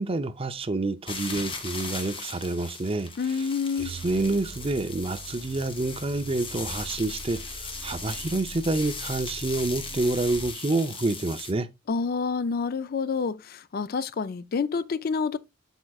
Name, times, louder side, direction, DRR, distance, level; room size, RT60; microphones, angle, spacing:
voice 1, 0.0-3.1 3.4-3.5 3.8-11.7, right 2 dB, 30° right, 0.5 m, -28 dB
sound 1, 1.1-11.5, left 4 dB, 25° left, 1.6 m, -38 dB
voice 2, 3.2-3.9 11.9-15.4, left 5 dB, 50° left, 0.4 m, -28 dB
sound 2, 3.8-10.5, right 2 dB, 50° right, 2.9 m, -43 dB
8.0 x 7.5 x 2.3 m
head